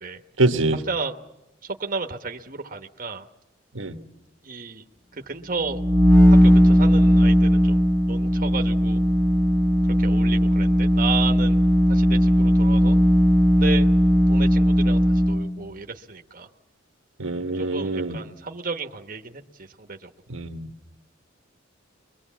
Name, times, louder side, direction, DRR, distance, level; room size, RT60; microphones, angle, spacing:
voice 1, 0.4-0.8 3.7-4.0 17.2-18.2 20.3-20.7, right 2 dB, 85° right, 7 dB, 1.3 m, -24 dB
voice 2, 1.8-3.3 4.4-4.8 5.3-5.8 6.4-9.0 10.0-11.6 11.9-13.0 13.6-13.9 14.3-16.5 17.5-20.1, right 4 dB, 45° right, 4 dB, 1.1 m, -33 dB
sound 1, 5.6-15.5, equal, 15° left, 2.4 m, -17 dB
23.0 x 22.5 x 7.4 m, 0.92 s
head